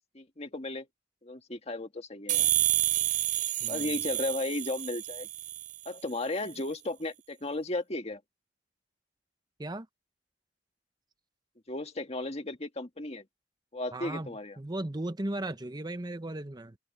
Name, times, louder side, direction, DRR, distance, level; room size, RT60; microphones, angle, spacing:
voice 1, 0.1-0.9 1.2-2.5 3.7-5.3 5.9-8.2 11.7-13.3 13.7-14.6, left 2 dB, 35° left, 1.9 m, -35 dB
sound 1, 2.3-5.9, right 14 dB, 45° right, 0.5 m, -29 dB
voice 2, 3.6-4.0 9.6-9.9 13.9-16.8, right 1 dB, 25° right, 1.0 m, -36 dB
head